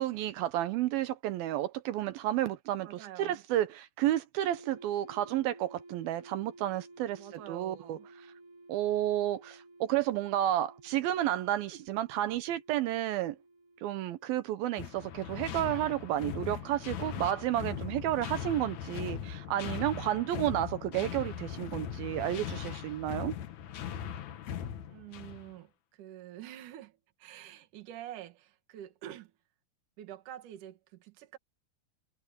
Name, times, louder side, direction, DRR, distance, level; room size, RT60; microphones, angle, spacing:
voice 1, 0.0-7.2 7.5-8.0 8.7-13.4 13.8-23.3, right 13 dB, 75° right, 2.4 m, -31 dB
voice 2, 2.8-3.4 7.2-8.1 24.9-29.3 30.0-31.4, right 12 dB, 55° right, 2.9 m, -47 dB
sound 1, 4.5-15.2, right 2 dB, 90° right, 0.6 m, -55 dB
sound 2, 14.8-25.5, left 9 dB, 60° left, 2.0 m, -39 dB
omnidirectional pair, 4.8 m